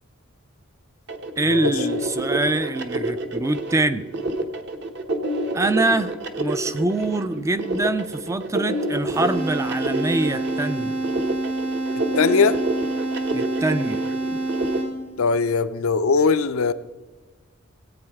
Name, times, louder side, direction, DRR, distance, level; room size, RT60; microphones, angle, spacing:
sound 1, 1.1-14.8, right 2 dB, 55° right, 1.0 m, -28 dB
voice 1, 1.4-4.1 5.5-10.9 13.3-14.0, right 2 dB, 15° right, 11 dB, 0.3 m, -24 dB
sound 2, 9.1-15.2, right 2 dB, 70° right, 4.5 m, -27 dB
voice 2, 12.1-12.6 15.2-16.7, left 4 dB, 85° left, 11 dB, 0.5 m, -20 dB
18.0 x 8.7 x 3.5 m, 1.2 s
head